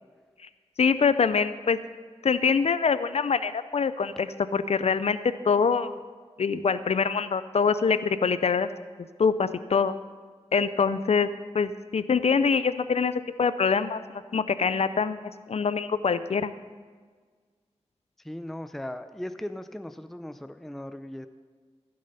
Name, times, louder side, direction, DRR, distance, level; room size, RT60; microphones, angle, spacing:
voice 1, 0.8-1.8 2.2-6.0 6.4-8.7 9.2-9.9 10.5-11.3 11.5-15.2 15.5-16.5, left 5 dB, 65° left, 13 dB, 0.4 m, -24 dB
voice 2, 18.2-21.3, left 1 dB, ahead, 10 dB, 0.4 m, -38 dB
15.5 x 6.6 x 5.5 m, 1.5 s
wide cardioid pair, 85°, 11 cm